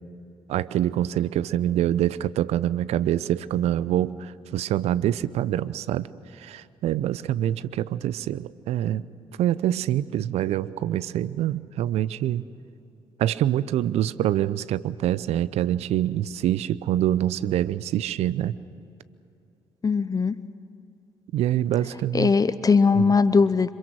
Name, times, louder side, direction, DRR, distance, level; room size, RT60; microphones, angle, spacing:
voice 1, 0.5-6.1 6.3-9.1 9.4-12.4 13.2-18.6 21.3-22.3 22.9-23.1, right 12 dB, 65° right, 18 dB, 0.7 m, -25 dB
voice 2, 19.8-20.4 22.1-23.7, left 5 dB, 30° left, 15 dB, 0.7 m, -20 dB
26.5 x 23.5 x 6.3 m, 2.7 s
hypercardioid pair, 45°, 12 cm